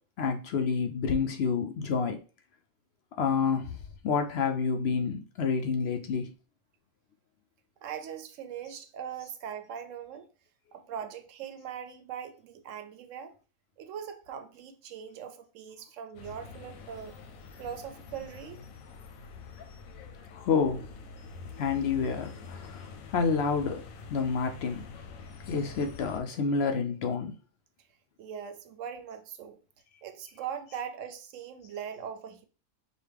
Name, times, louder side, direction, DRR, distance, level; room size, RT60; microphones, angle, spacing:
voice 1, 0.2-2.2 3.2-3.7 4.0-6.3 20.3-20.9 21.6-22.8 23.1-23.8 24.1-24.8 25.5-27.3, left 5 dB, 65° left, 0.7 m, -28 dB
voice 2, 7.8-10.3 10.7-13.3 13.8-17.2 17.6-18.6 28.2-29.6 30.0-32.4, right 8 dB, 75° right, 0.9 m, -40 dB
sound 1, 16.1-26.2, left 5 dB, 90° left, 1.0 m, -46 dB
4.9 x 2.2 x 3.3 m
omnidirectional pair, 1.4 m